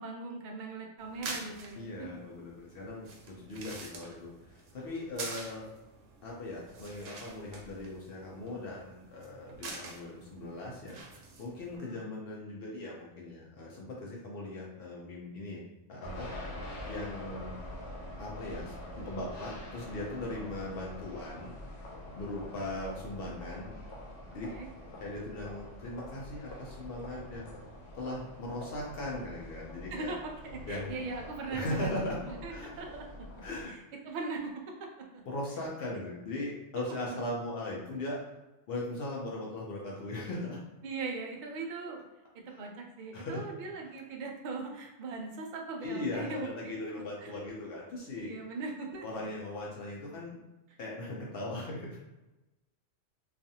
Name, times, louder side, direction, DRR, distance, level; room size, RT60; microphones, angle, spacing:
voice 1, 0.0-2.3 11.7-12.1 24.5-24.7 29.9-30.2 30.4-33.2 33.7-33.8 34.0-34.5 36.8-36.9 40.8-42.1 42.6-47.3 48.2-49.0, right 3 dB, 65° right, 1 dB, 0.5 m, -40 dB
sound 1, 1.0-11.8, right 3 dB, 80° right, 0.9 m, -47 dB
voice 2, 1.7-5.7 6.2-11.0 11.4-15.6 15.9-16.3 16.9-17.5 18.2-21.5 22.1-23.7 24.3-24.5 25.0-27.5 27.9-30.1 30.7-30.9 31.5-32.2 32.5-32.7 33.4-33.7 35.3-38.2 38.7-40.6 42.5-42.6 43.1-43.4 45.8-48.3 49.0-50.3 50.8-52.0, left 1 dB, 60° left, -3 dB, 0.7 m, -39 dB
sound 2, 16.0-33.6, left 1 dB, 90° left, 1.1 m, -45 dB
2.5 x 2.4 x 2.7 m, 1.0 s
omnidirectional pair, 1.3 m